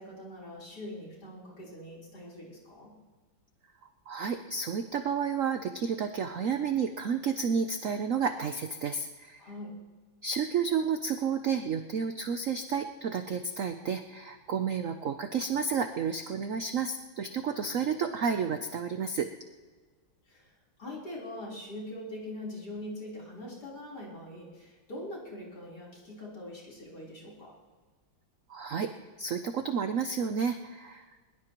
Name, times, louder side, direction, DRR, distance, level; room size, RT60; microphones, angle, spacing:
voice 1, 0.0-2.9 9.4-9.7 20.3-20.5 20.8-27.5, left 1 dB, 50° left, -5 dB, 4.6 m, -42 dB
voice 2, 4.1-9.4 10.2-19.3 28.5-28.9 29.2-31.1, right 6 dB, 65° right, 7 dB, 0.8 m, -31 dB
22.0 x 20.5 x 3.1 m, 1.4 s
omnidirectional pair, 2.2 m